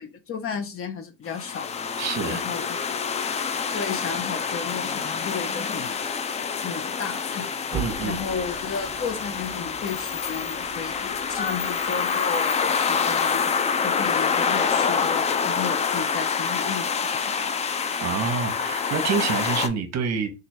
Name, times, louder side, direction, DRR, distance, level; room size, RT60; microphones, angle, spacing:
voice 1, 0.0-1.8 2.3-2.8 3.7-6.0 6.6-7.5 8.0-13.5 13.8-17.6, left 6 dB, 40° left, 0.8 m, -33 dB
sound 1, 1.3-19.7, left 6 dB, 20° left, 0.4 m, -26 dB
voice 2, 2.0-2.4 7.7-8.2 18.0-20.3, right 5 dB, 45° right, 0.9 m, -27 dB
sound 2, 7.7-12.5, right 5 dB, 5° right, 1.2 m, -40 dB
3.0 x 2.5 x 4.3 m
supercardioid pair, 90°, 36 cm